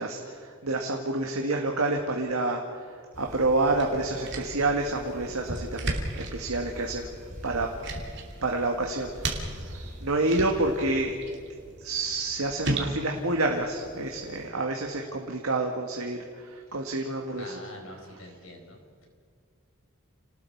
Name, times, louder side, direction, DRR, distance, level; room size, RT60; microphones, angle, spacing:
voice 1, 0.0-2.9 3.2-7.1 7.4-7.7 8.4-9.3 10.0-11.2 11.8-17.5, right 2 dB, 80° right, 1 dB, 1.8 m, -28 dB
sound 1, 3.1-10.9, equal, 35° right, 3.8 m, -45 dB
sound 2, 3.3-14.5, right 2 dB, 55° right, 2.8 m, -37 dB
voice 2, 17.4-19.1, left 1 dB, 65° left, 2 dB, 4.5 m, -45 dB
30.0 x 19.5 x 4.7 m, 2.1 s
head